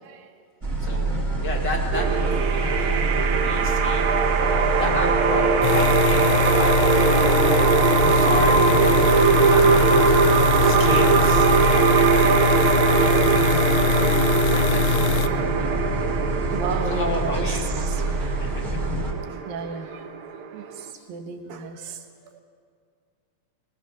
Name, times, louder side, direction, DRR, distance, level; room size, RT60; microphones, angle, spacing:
voice 1, 0.6-4.0 4.7-10.2 10.6-13.6 13.9-15.0 15.3-15.7 16.9-17.7 18.3-18.8 19.7-19.9 21.0-21.1, left 2 dB, 35° left, 0 dB, 2.0 m, -33 dB
sound 1, 0.6-19.1, right 2 dB, 25° right, 3.4 m, -27 dB
sound 2, 1.9-20.9, right 5 dB, 65° right, 2.3 m, -21 dB
voice 2, 4.4-4.8 10.4-10.8 12.6-12.9 13.9-14.0 15.3-15.5 16.1-18.4 19.3-20.1 20.5-22.0 22.3-22.4, right 5 dB, 85° right, 5 dB, 3.1 m, -35 dB
sound 3, 5.6-15.3, left 8 dB, 80° left, 2.4 m, -23 dB
24.5 x 19.5 x 6.2 m, 2.3 s
omnidirectional pair, 4.0 m